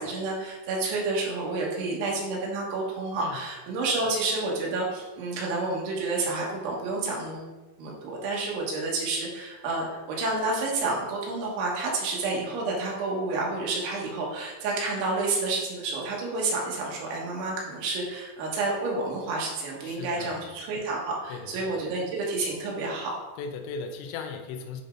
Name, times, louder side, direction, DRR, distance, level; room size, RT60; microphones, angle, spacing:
voice 1, 0.0-7.5 7.8-23.1, right 3 dB, 80° right, -3 dB, 3.7 m, -29 dB
voice 2, 19.8-20.5 21.3-21.9 23.4-24.8, left 5 dB, 85° left, 4 dB, 2.9 m, -38 dB
10.0 x 3.5 x 3.6 m, 1.1 s
omnidirectional pair, 5.4 m